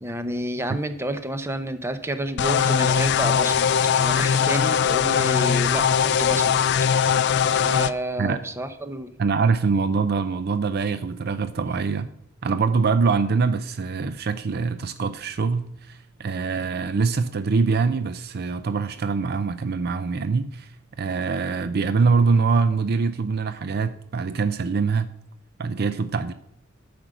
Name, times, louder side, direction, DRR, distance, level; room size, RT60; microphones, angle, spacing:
voice 1, 0.0-3.7 4.0-6.6 7.5-9.1, right 1 dB, 10° right, 0.8 m, -30 dB
sound 1, 2.4-7.9, left 7 dB, 55° left, 0.4 m, -20 dB
voice 2, 9.2-12.1 12.4-20.7 21.0-25.1 25.6-26.3, right 4 dB, 50° right, 0.4 m, -24 dB
9.9 x 5.2 x 7.7 m
head